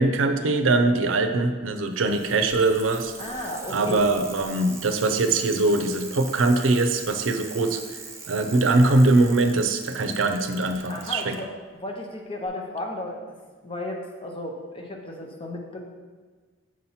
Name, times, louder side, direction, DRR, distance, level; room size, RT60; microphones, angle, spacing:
voice 1, 0.0-3.1 3.7-7.8 8.3-11.3, right 2 dB, 90° right, 7 dB, 0.5 m, -22 dB
Bicycle, 1.7-11.4 12.5-12.6, right 4 dB, 15° right, 0.5 m, -42 dB
voice 2, 3.2-4.0 10.9-13.2 13.6-15.8, left 1 dB, 25° left, 1 dB, 0.7 m, -34 dB
6.2 x 2.9 x 5.5 m, 1.4 s
head